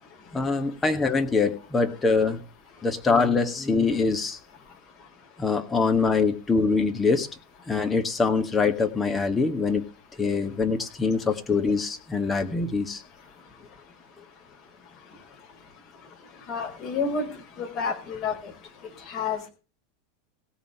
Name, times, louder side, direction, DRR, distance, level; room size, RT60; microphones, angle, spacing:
voice 1, 0.3-2.4 2.8-4.4 5.4-7.3 7.7-9.8 10.2-13.0, left 4 dB, 15° left, 5 dB, 1.7 m, -24 dB
voice 2, 16.5-17.3 17.6-18.3 19.1-19.5, left 5 dB, 40° left, 2 dB, 4.6 m, -29 dB
16.5 x 5.6 x 7.9 m, 0.34 s
figure-of-eight pair, 85°, 0 cm